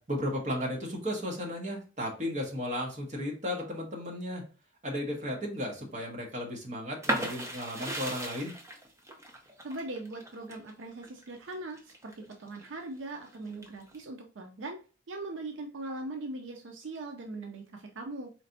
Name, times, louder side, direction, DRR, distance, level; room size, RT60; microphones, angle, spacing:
voice 1, 0.0-4.4 4.8-8.5, left 1 dB, 40° right, 0 dB, 1.2 m, -34 dB
sound 1, 7.0-12.7 13.1-14.0, right 1 dB, 15° right, 0.6 m, -36 dB
voice 2, 9.6-14.8 15.1-18.3, right 2 dB, 75° right, 3 dB, 0.5 m, -40 dB
4.0 x 3.2 x 2.7 m, 0.36 s
head